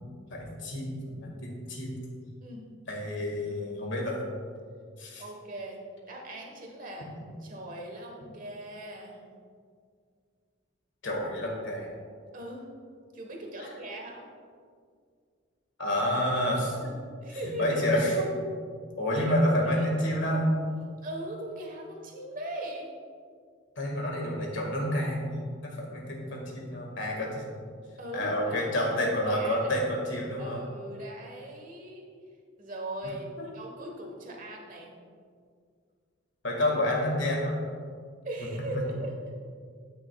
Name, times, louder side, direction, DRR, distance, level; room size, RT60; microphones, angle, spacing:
voice 1, 0.3-2.0 2.9-4.2 5.0-5.2 11.0-11.9 15.8-16.9 17.3-18.3 19.0-20.5 23.8-27.4 28.1-30.6 33.4-33.5 36.4-37.6, left 1 dB, 65° left, -1 dB, 1.9 m, -29 dB
voice 2, 5.2-5.8 6.0-7.1 7.4-9.2 12.3-12.7 13.1-14.3 17.2-17.8 19.1-19.3 19.7-19.9 21.0-22.9 28.0-28.9 29.2-29.8 30.4-32.1 32.6-35.0 38.2-39.2, right 1 dB, 45° right, 0 dB, 1.3 m, -39 dB
12.5 x 6.2 x 2.3 m, 2.1 s
head